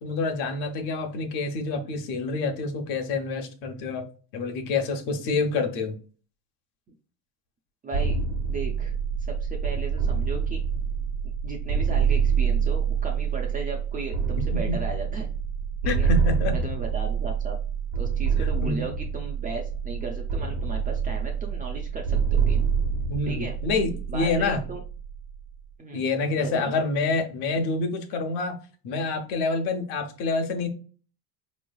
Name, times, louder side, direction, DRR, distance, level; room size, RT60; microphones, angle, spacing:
voice 1, 0.0-4.1 4.3-6.0 14.7-14.8 15.8-16.6 18.6-18.8 23.1-24.6 25.9-28.6 28.8-30.7, left 3 dB, 65° left, 5 dB, 1.0 m, -27 dB
voice 2, 7.8-8.2 8.5-8.9 9.3-10.6 11.4-15.3 15.8-16.1 16.5-17.6 18.0-22.7 23.3-23.6 24.1-24.8 25.8-26.0 26.4-26.7, right 3 dB, 20° right, 1 dB, 0.3 m, -36 dB
sound 1, 7.9-25.6, right 6 dB, 75° right, 1.1 m, -26 dB
4.4 x 3.1 x 2.2 m, 0.39 s
supercardioid pair, 135°, 47 cm